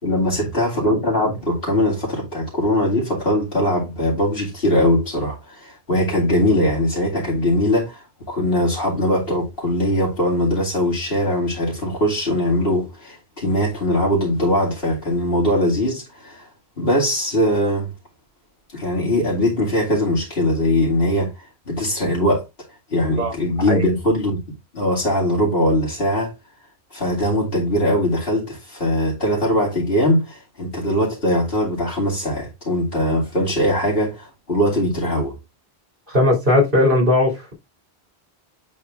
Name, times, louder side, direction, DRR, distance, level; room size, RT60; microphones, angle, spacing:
voice 1, 0.0-16.5 16.8-17.9 18.7-21.3 21.7-22.4 22.9-24.4 24.7-26.3 26.9-35.4, left 1 dB, 65° left, 2.6 m, -21 dB
voice 2, 36.1-37.5, left 2 dB, 55° right, 3.3 m, -17 dB
8.4 x 3.6 x 3.5 m
omnidirectional pair, 1.0 m